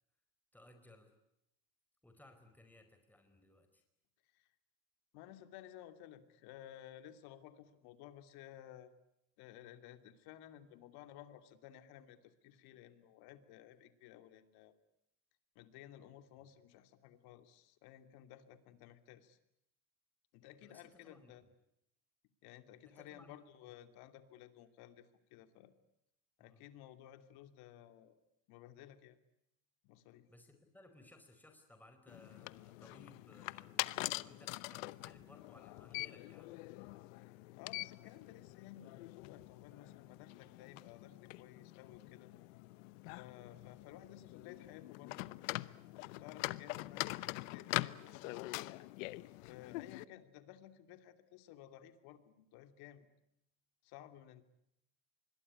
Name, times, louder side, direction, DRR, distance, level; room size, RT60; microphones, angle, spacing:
voice 1, 0.5-1.1 2.0-3.8 20.6-21.3 22.9-23.7 26.4-26.7 30.3-36.5, left 1 dB, 5° left, 6 dB, 4.7 m, -62 dB
voice 2, 5.1-8.9 9.4-14.7 15.5-19.4 20.3-21.4 22.4-25.7 26.4-28.1 28.5-29.2 29.8-30.3 37.6-42.3 43.2-45.3 45.9-48.8 49.4-53.1 53.8-54.4, left 12 dB, 70° left, 9 dB, 2.8 m, -56 dB
sound 1, 32.1-50.1, left 21 dB, 85° left, 1.0 m, -44 dB
26.0 x 22.0 x 9.8 m, 0.81 s
supercardioid pair, 110°, 39 cm